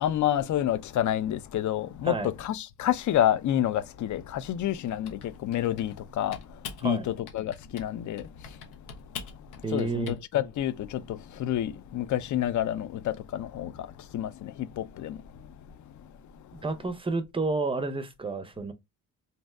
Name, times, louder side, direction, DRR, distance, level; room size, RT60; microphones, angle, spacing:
voice 1, 0.0-6.4 6.8-8.2 9.7-13.7 14.1-15.2, left 11 dB, 45° left, 0.5 m, -28 dB
Typing, 4.9-6.0 6.3-6.9 7.3-7.9 8.2-10.2, left 6 dB, 90° left, 0.8 m, -43 dB
voice 2, 9.6-10.1 16.5-18.7, right 3 dB, 15° right, 0.6 m, -30 dB
2.7 x 2.1 x 3.3 m
supercardioid pair, 70°, 43 cm